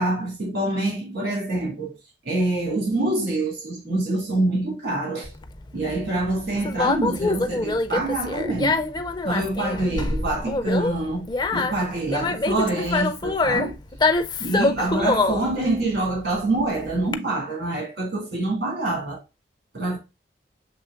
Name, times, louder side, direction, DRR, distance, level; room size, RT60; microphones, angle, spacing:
voice 1, 0.0-1.9 2.2-5.3 5.7-8.8 9.2-13.8 14.4-19.2 19.7-20.0, right 2 dB, 75° right, 2.5 m, -26 dB
Conversation, 5.2-17.1, left 3 dB, 25° left, 0.4 m, -25 dB
6.7 x 3.2 x 2.4 m
head